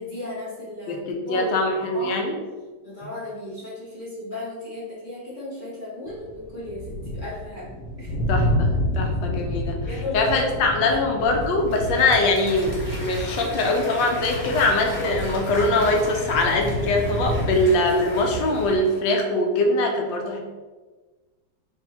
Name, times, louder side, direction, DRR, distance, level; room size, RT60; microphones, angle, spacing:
voice 1, 0.0-2.2 2.8-7.7 8.0-8.1 9.9-10.3 10.6-11.0, left 2 dB, 40° left, -8 dB, 0.7 m, -35 dB
voice 2, 0.9-2.4 8.3-20.4, left 2 dB, 90° left, 2 dB, 1.4 m, -22 dB
sound 1, 6.1-18.8, left 1 dB, 75° left, 1.1 m, -29 dB
Applause / Crowd, 11.4-19.2, equal, 15° left, 0.9 m, -38 dB
3.3 x 2.7 x 4.1 m, 1.3 s
omnidirectional pair, 2.0 m